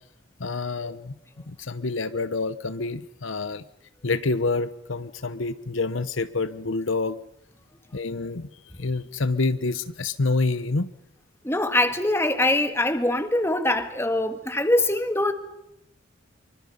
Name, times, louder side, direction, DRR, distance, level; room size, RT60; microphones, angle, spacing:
voice 1, 0.4-1.1 1.5-3.6 4.0-7.2 7.9-8.5 8.8-10.9, left 3 dB, 70° left, 13 dB, 1.0 m, -27 dB
voice 2, 11.4-15.3, left 1 dB, 10° left, 8 dB, 1.7 m, -23 dB
25.5 x 24.0 x 5.6 m, 0.82 s
head